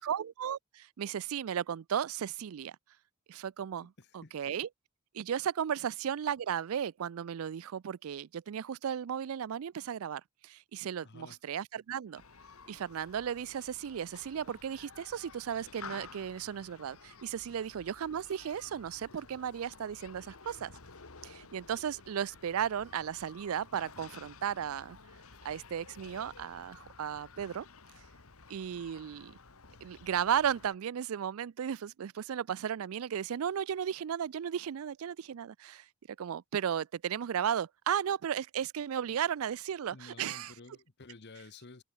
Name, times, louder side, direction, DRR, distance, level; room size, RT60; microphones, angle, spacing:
voice 1, 0.0-2.8 3.3-4.7 5.1-12.2 12.7-20.7 21.2-25.0 25.4-27.7 28.5-29.4 29.8-35.8 36.2-40.5, right 8 dB, 75° right, 0.4 m, -35 dB
voice 2, 4.0-4.3 11.0-11.4 39.9-41.8, left 3 dB, 50° left, 1.1 m, -52 dB
Human group actions, 12.1-30.8, left 4 dB, 85° left, 2.0 m, -53 dB
head